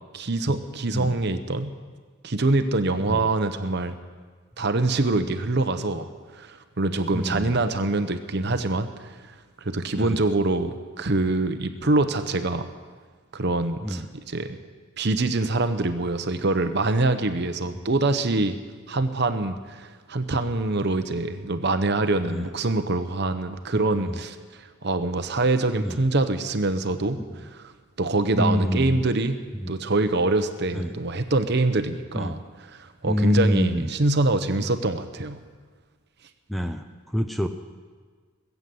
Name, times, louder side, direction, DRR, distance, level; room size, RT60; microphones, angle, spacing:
voice 1, 0.1-1.7 2.2-4.0 4.6-6.1 6.3-9.3 9.6-12.7 13.3-14.0 14.3-14.6 15.0-18.6 18.9-24.4 24.8-27.2 28.0-29.4 29.7-32.4 32.8-35.4, right 2 dB, 50° right, 9 dB, 0.9 m, -24 dB
voice 2, 7.1-7.6 8.4-8.6 9.9-10.3 13.8-14.1 22.3-22.5 23.9-24.2 25.8-26.0 27.3-27.4 28.4-29.0 29.5-29.7 30.7-31.0 32.1-32.4 33.0-33.9 36.5-37.5, left 1 dB, ahead, 6 dB, 0.5 m, -27 dB
20.0 x 8.3 x 7.7 m, 1.5 s
head